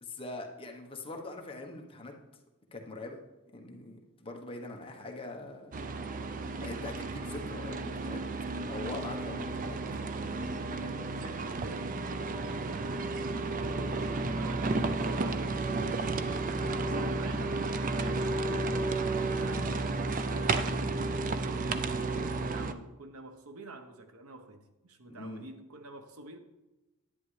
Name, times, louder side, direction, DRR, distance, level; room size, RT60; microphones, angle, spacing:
voice 1, 0.0-2.1 2.7-3.2 3.5-5.7 6.6-8.2 8.7-9.8 18.0-18.2 25.1-25.4, left 2 dB, 25° left, 2 dB, 1.1 m, -42 dB
sound 1, 5.7-22.7, right 3 dB, 40° right, 0.5 m, -32 dB
voice 2, 10.7-13.1 13.5-18.2 19.4-19.9 20.2-26.4, right 2 dB, 85° right, 8 dB, 1.0 m, -48 dB
10.5 x 9.8 x 3.3 m, 1.0 s
head